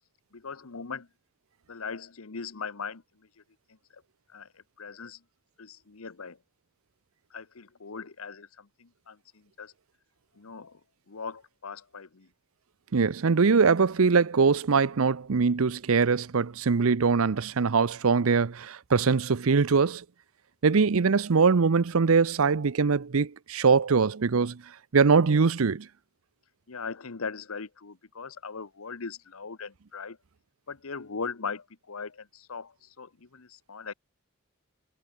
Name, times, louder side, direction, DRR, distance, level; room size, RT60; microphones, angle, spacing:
voice 1, 0.3-1.1 1.7-3.0 3.9-4.0 4.3-4.5 4.8-5.2 5.6-6.4 7.3-9.7 10.4-10.8 11.1-12.3 26.7-30.2 30.7-33.9, left 5 dB, 75° left, 1.0 m, -39 dB
voice 2, 12.9-20.0 20.6-24.6 24.9-25.9, right 5 dB, 70° right, 0.6 m, -22 dB
head